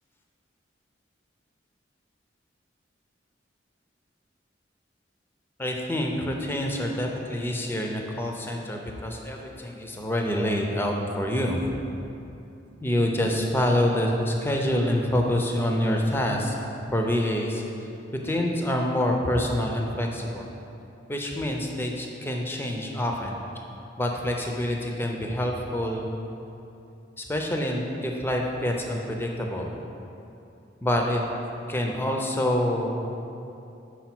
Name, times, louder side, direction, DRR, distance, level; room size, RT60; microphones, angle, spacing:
voice 1, 5.6-11.7 12.8-16.6 16.9-17.6 18.2-20.5 21.1-23.4 24.0-26.1 27.2-29.7 30.8-31.2 31.7-33.0, left 1 dB, 10° left, 1 dB, 0.6 m, -26 dB
5.8 x 4.9 x 6.0 m, 2.8 s
head